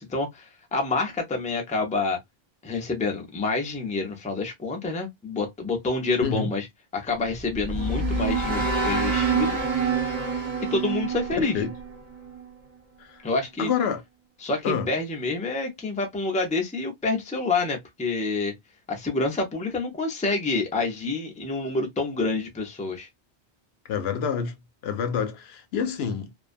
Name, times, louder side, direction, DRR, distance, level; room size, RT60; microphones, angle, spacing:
voice 1, 0.0-2.2 2.6-6.7 6.9-9.6 10.6-11.6 13.2-13.7 14.4-18.6 18.9-23.1, left 3 dB, 10° left, 0.5 m, -28 dB
voice 2, 6.2-6.5 11.4-11.7 13.0-13.2 13.6-14.0 14.6-14.9 23.9-24.5 24.8-26.3, left 7 dB, 80° left, 0.8 m, -27 dB
sound 1, 7.2-12.5, right 4 dB, 40° right, 0.8 m, -27 dB
2.5 x 2.2 x 2.4 m
omnidirectional pair, 1.0 m